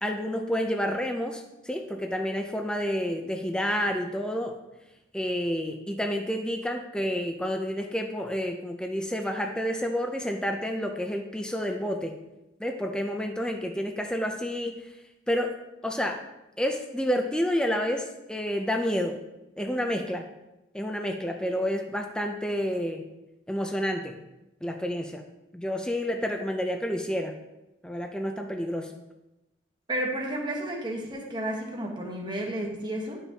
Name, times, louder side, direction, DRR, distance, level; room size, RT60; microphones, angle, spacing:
voice 1, 0.0-4.6 5.1-12.1 12.6-14.9 15.3-15.6 15.8-16.2 16.6-19.2 19.6-20.3 20.7-23.0 23.5-24.2 24.6-25.2 25.5-27.3 27.8-29.0, equal, 5° left, 3 dB, 0.5 m, -29 dB
voice 2, 29.9-33.2, right 1 dB, 25° right, -1 dB, 1.2 m, -32 dB
11.0 x 5.7 x 2.8 m, 0.95 s
head